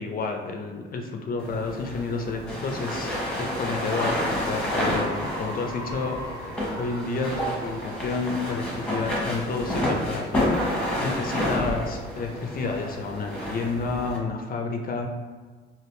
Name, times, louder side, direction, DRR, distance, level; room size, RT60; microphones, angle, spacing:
voice 1, 0.0-6.4 6.8-10.7 11.0-15.1, left 4 dB, 45° left, 3 dB, 0.4 m, -30 dB
sound 1, 1.4-14.2, equal, 5° left, 1.0 m, -29 dB
Cheering / Applause, 3.0-9.6, equal, 15° right, 1.4 m, -41 dB
3.3 x 2.5 x 2.6 m, 1.5 s
cardioid pair, 90°, 20 cm